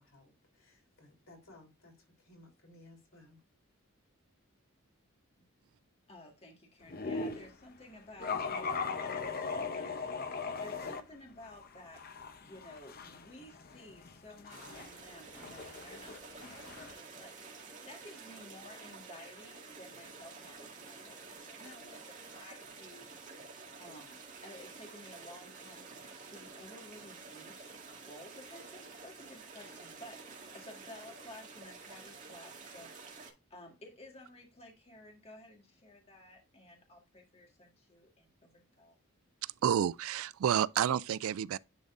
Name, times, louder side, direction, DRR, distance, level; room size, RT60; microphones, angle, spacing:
voice 1, 0.0-3.4, left 2 dB, 65° left, 3.5 m, -59 dB
voice 2, 6.1-10.2 10.6-12.0 12.4-17.3 17.8-23.1 23.8-25.8 26.3-27.8 28.1-32.9 33.5-39.0, left 1 dB, 30° left, 1.7 m, -54 dB
sound 1, 6.9-7.5 8.2-11.0 11.4-16.9, left 4 dB, 45° left, 0.7 m, -39 dB
sound 2, 14.5-33.3, right 4 dB, 35° right, 1.8 m, -50 dB
voice 3, 39.4-41.6, right 9 dB, 70° right, 0.3 m, -30 dB
10.5 x 3.9 x 2.5 m
head